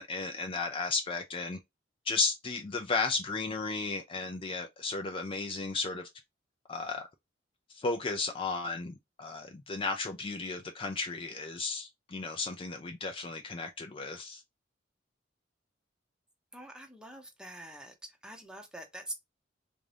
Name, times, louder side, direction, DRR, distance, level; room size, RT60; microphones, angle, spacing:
voice 1, 0.0-1.6 2.1-6.1 6.7-7.1 7.7-14.4, left 4 dB, 30° left, 0.4 m, -34 dB
voice 2, 16.5-17.9 18.2-19.1, right 1 dB, 5° right, 0.7 m, -44 dB
3.5 x 2.6 x 3.3 m
head